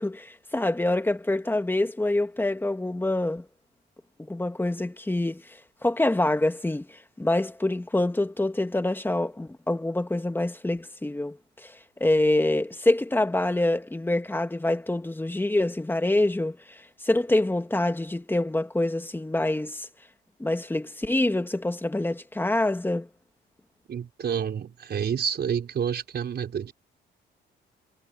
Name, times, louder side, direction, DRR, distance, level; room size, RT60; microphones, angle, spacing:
voice 1, 0.0-3.5 4.2-19.9 20.4-23.1, left 1 dB, 10° left, 2.0 m, -26 dB
voice 2, 23.9-26.7, right 7 dB, 55° right, 5.1 m, -29 dB
cardioid pair, 90°, 20 cm